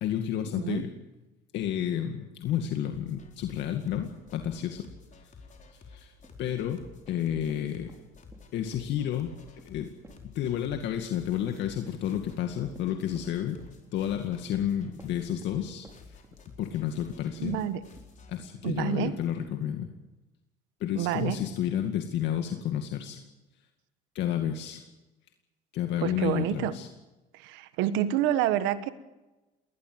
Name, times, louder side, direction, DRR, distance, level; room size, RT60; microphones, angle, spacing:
voice 1, 0.0-0.9 1.5-4.9 5.9-6.1 6.4-7.9 8.5-9.3 9.7-9.9 10.2-13.6 13.9-16.2 16.6-17.6 18.3-19.9 20.8-23.2 24.1-24.8 25.7-26.9, left 10 dB, 70° left, 5 dB, 2.2 m, -31 dB
sound 1, 2.9-18.4, left 4 dB, 40° left, 4.6 m, -52 dB
sound 2, 6.1-8.0 8.3-15.6 15.8-19.8, right 1 dB, 15° right, 5.4 m, -54 dB
voice 2, 17.4-17.8 18.6-19.1 20.9-21.4 26.0-26.7 27.4-28.9, right 12 dB, 85° right, 13 dB, 1.4 m, -28 dB
21.0 x 19.5 x 8.0 m, 1.1 s
supercardioid pair, 90°, 19 cm